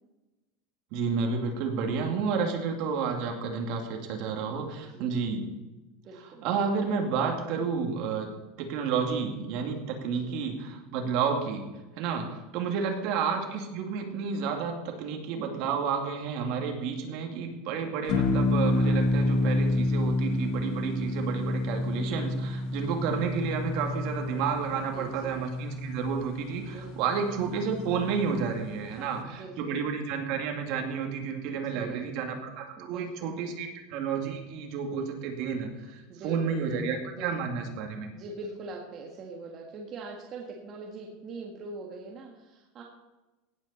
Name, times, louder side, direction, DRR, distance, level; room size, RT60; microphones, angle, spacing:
voice 1, 0.9-5.5 6.4-8.3 8.6-11.7 12.0-38.1, right 6 dB, 50° right, 3 dB, 2.4 m, -31 dB
voice 2, 4.8-5.1 6.0-6.4 10.0-10.4 12.6-12.9 24.7-25.7 26.6-26.9 28.9-29.8 31.5-32.0 32.8-33.3 36.1-36.7 37.0-37.3 38.1-42.8, right 3 dB, 30° right, -1 dB, 1.7 m, -43 dB
sound 1, 18.1-28.6, left 2 dB, 45° left, 1.7 m, -29 dB
17.0 x 8.6 x 4.3 m, 1.1 s
supercardioid pair, 155°, 0 cm